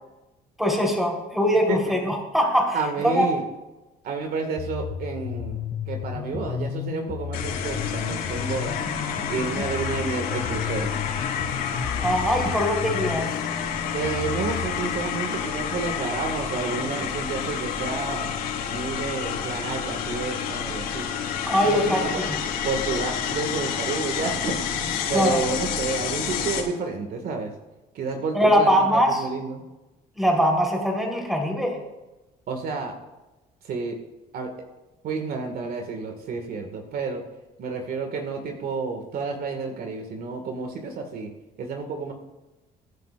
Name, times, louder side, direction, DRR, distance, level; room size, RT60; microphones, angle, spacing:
voice 1, 0.6-2.8 3.0-3.3 12.0-13.3 21.4-22.4 25.1-25.4 28.3-29.2 30.2-31.7, equal, ahead, 0 dB, 3.9 m, -22 dB
voice 2, 2.7-3.4 4.0-5.6 5.9-8.8 9.3-10.9 13.9-18.3 18.7-21.1 21.6-22.2 22.6-27.5 27.9-29.6 32.5-33.0 33.6-34.0 34.3-34.5 35.0-37.2 37.6-41.3 41.6-42.1, right 4 dB, 65° right, 4 dB, 1.9 m, -30 dB
sound 1, 4.6-14.7, left 8 dB, 55° left, 1.9 m, -33 dB
sound 2, 7.3-26.6, left 7 dB, 85° left, 4.2 m, -29 dB
23.0 x 9.9 x 2.5 m, 1.0 s
cardioid pair, 110°, 17 cm